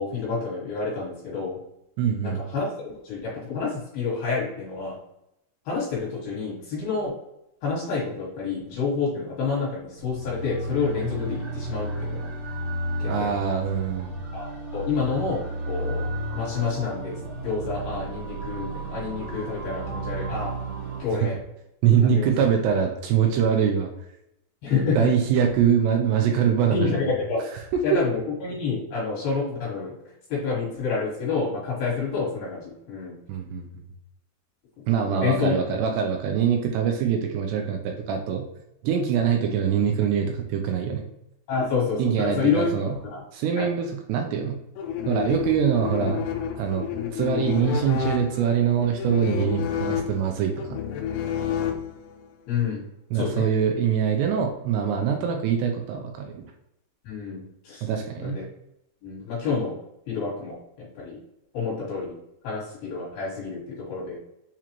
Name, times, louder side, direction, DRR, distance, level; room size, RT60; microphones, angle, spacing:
voice 1, 0.0-1.6 2.2-2.7 3.0-5.0 5.7-7.1 7.6-12.3 13.0-13.3 14.3-16.1 16.3-20.5 21.0-21.4 22.0-22.4 24.6-25.1 26.7-27.5 27.8-29.9 30.3-33.2 35.1-35.5 41.5-43.2 43.6-43.7 52.5-52.8 53.1-53.4 57.0-57.9 58.2-58.4 59.0-59.8 60.1-61.2 61.5-62.2 62.4-64.2, left 5 dB, 65° left, -6 dB, 3.0 m, -28 dB
voice 2, 2.0-2.4 13.1-14.1 21.8-23.9 25.0-26.9 27.7-28.0 33.3-33.6 34.9-38.5 38.8-41.0 42.0-42.9 43.3-44.6 45.1-46.2 46.6-46.9 47.1-50.7 53.1-56.4 57.8-58.4, right 7 dB, 85° right, 2 dB, 2.4 m, -23 dB
sound 1, 10.0-21.0, right 1 dB, 60° right, 2.5 m, -33 dB
sound 2, 44.8-52.3, left 8 dB, 80° left, 2.6 m, -30 dB
7.0 x 2.5 x 2.9 m, 0.83 s
omnidirectional pair, 5.3 m